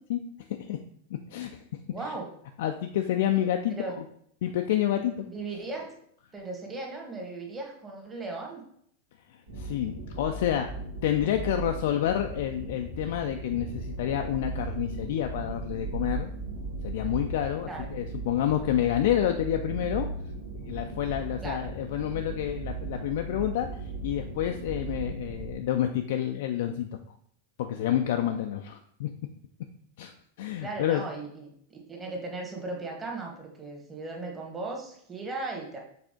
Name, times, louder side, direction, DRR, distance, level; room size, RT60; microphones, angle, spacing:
voice 1, 1.3-1.6 2.0-2.1 2.6-4.0 4.4-5.2 9.5-10.7 11.0-16.3 16.8-20.1 20.6-23.7 24.0-26.9 27.6-29.1 30.0-30.1 30.4-31.0, left 11 dB, 55° left, 5 dB, 0.4 m, -28 dB
voice 2, 1.9-2.3 3.7-4.0 5.3-5.9 6.3-8.6 17.6-17.9 21.4-21.6 30.6-35.8, right 3 dB, 15° right, 0 dB, 1.6 m, -37 dB
sound 1, 9.5-25.6, right 3 dB, 65° right, 1.6 m, -37 dB
6.8 x 4.2 x 3.7 m, 0.66 s
figure-of-eight pair, 90°, 0 cm